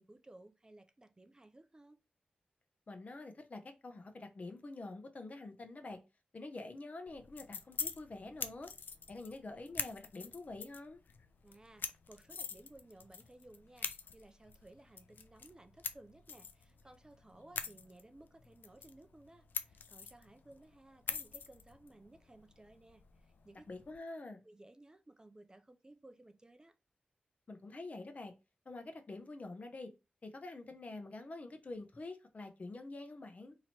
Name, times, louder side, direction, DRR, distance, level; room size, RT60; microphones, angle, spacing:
voice 1, 0.0-2.0 11.4-23.7 24.2-26.7, right 2 dB, 25° right, 0.4 m, -59 dB
voice 2, 2.9-6.0 6.3-8.7 9.1-11.0 23.7-24.4 27.5-28.3 28.7-29.9 30.2-33.5, left 2 dB, 50° left, 0.8 m, -47 dB
sound 1, 7.1-24.0, left 6 dB, 80° left, 0.4 m, -46 dB
3.0 x 2.9 x 4.2 m
cardioid pair, 65°, 3 cm